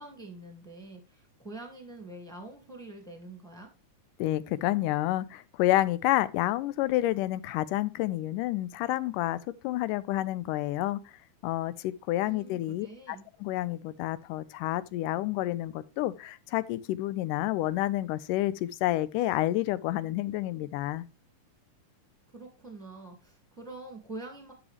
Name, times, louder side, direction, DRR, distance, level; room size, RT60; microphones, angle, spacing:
voice 1, 0.0-3.7 12.2-13.3 22.3-24.5, right 2 dB, ahead, 1.4 m, -45 dB
voice 2, 4.2-9.4 9.6-11.0 11.4-21.0, left 15 dB, 85° left, 2.1 m, -29 dB
10.5 x 6.1 x 3.3 m
omnidirectional pair, 3.7 m